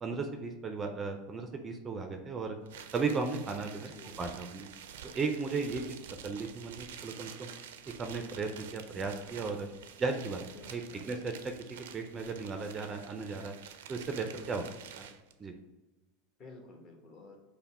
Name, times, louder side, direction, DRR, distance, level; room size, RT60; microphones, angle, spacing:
voice 1, 0.0-2.6 2.9-4.7 5.0-6.0 6.2-7.5 8.0-9.7 10.0-11.3 11.9-13.5 13.9-14.7 14.9-15.1 15.4-15.5, right 4 dB, 25° right, 5 dB, 0.4 m, -35 dB
sound 1, 2.7-15.3, right 8 dB, 90° right, 0.4 m, -49 dB
voice 2, 3.8-4.2 10.5-11.2 16.4-17.4, left 3 dB, 35° left, 1 dB, 0.9 m, -52 dB
5.6 x 2.1 x 4.1 m, 1.1 s
supercardioid pair, 140°, 0 cm